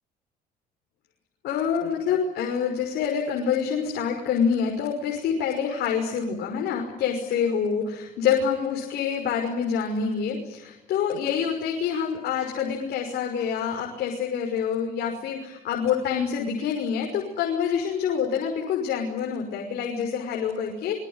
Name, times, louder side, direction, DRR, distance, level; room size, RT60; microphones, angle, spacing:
voice 1, 1.4-21.0, left 7 dB, 75° left, 2 dB, 5.9 m, -26 dB
25.0 x 23.0 x 9.8 m, 0.96 s
cardioid pair, 110°, 17 cm